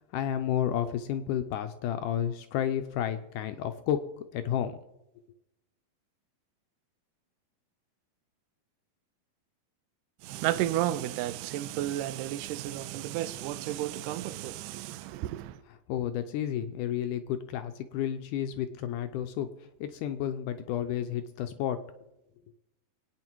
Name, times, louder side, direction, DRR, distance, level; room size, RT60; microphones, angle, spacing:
voice 1, 0.0-4.8 15.7-21.8, left 10 dB, 80° left, 1.9 m, -31 dB
voice 2, 10.2-15.6, right 13 dB, 80° right, 2.0 m, -32 dB
25.0 x 9.3 x 4.6 m
omnidirectional pair, 4.3 m